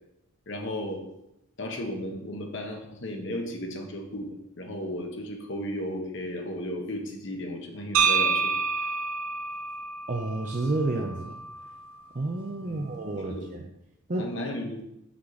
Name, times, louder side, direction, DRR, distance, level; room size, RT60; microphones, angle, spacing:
voice 1, 0.5-1.0 1.6-4.3 4.6-8.5 12.6-13.0 13.3-13.5 14.2-14.8, left 1 dB, 55° left, 3 dB, 1.1 m, -34 dB
sound 1, 7.9-12.0, right 5 dB, 75° right, 0.8 m, -28 dB
voice 2, 10.1-11.3 12.1-13.6 14.1-14.3, right 2 dB, 35° right, 0 dB, 0.6 m, -30 dB
6.3 x 5.9 x 4.0 m, 0.85 s
head